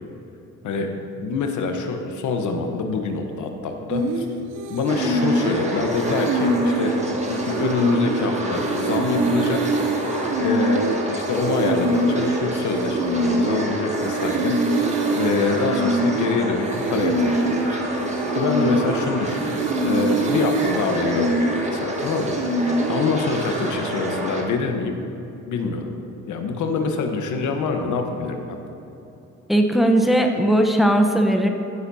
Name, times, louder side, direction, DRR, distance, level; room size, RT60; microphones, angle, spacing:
voice 1, 0.6-4.3 4.7-6.9 7.3-9.6 10.4-17.8 18.3-25.0 25.5-25.9 26.3-28.6, left 4 dB, 75° left, 4 dB, 1.1 m, -26 dB
sound 1, 3.9-23.7, right 2 dB, 75° right, 0.8 m, -24 dB
sound 2, 4.9-24.4, right 1 dB, 20° right, 1.6 m, -28 dB
voice 2, 29.5-31.5, right 1 dB, ahead, 3 dB, 0.8 m, -18 dB
15.0 x 8.2 x 2.8 m, 2.9 s
cardioid pair, 90°, 30 cm